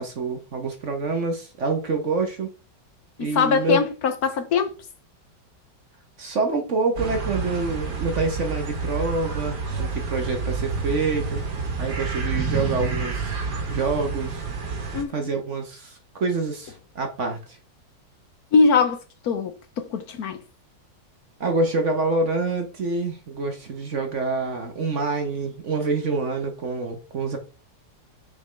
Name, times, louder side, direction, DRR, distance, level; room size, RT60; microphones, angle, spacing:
voice 1, 0.0-2.5 3.2-3.8 6.2-11.4 11.8-13.4 13.7-14.5 15.1-17.6 21.4-27.4, right 3 dB, 45° right, 1.2 m, -26 dB
voice 2, 3.2-4.7 14.9-15.4 18.5-19.0 19.2-20.4, left 5 dB, 65° left, 1.2 m, -22 dB
sound 1, 7.0-15.0, right 4 dB, 65° right, 2.0 m, -29 dB
6.9 x 5.2 x 3.3 m
omnidirectional pair, 1.9 m